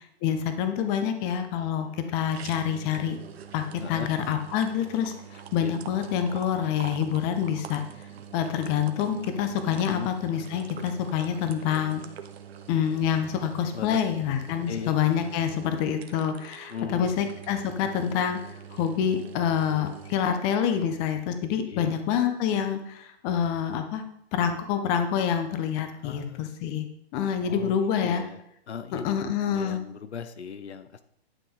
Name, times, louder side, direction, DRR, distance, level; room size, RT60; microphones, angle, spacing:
voice 1, 0.2-3.2 3.5-7.8 8.3-12.0 12.7-24.0 24.3-26.9 27.1-28.2 28.9-29.8, left 8 dB, 30° left, 7 dB, 1.2 m, -27 dB
sound 1, 1.4-20.2, right 8 dB, 70° right, 1.2 m, -45 dB
voice 2, 16.7-17.1 21.7-21.9 26.0-26.5 27.4-27.7 28.0-28.4 28.7-29.1 29.5-31.0, left 7 dB, 85° left, 12 dB, 1.0 m, -38 dB
11.5 x 6.2 x 5.0 m, 0.76 s
hypercardioid pair, 140°, 32 cm